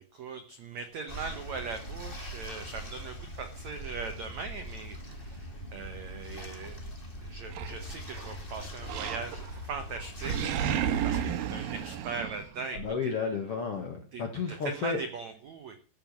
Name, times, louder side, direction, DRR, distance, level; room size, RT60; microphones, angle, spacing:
voice 1, 0.0-6.9 7.2-10.8 11.0-12.9 14.1-14.2 14.5-15.8, right 4 dB, 80° right, 7 dB, 1.6 m, -40 dB
sound 1, 1.1-10.5, equal, 20° left, 1.8 m, -42 dB
Animal, 7.5-8.3 8.9-9.6 9.9-12.9, right 9 dB, 65° right, 2.6 m, -32 dB
voice 2, 12.7-15.0, left 5 dB, 65° left, 3 dB, 1.4 m, -32 dB
14.5 x 7.5 x 7.3 m, 0.38 s
omnidirectional pair, 5.1 m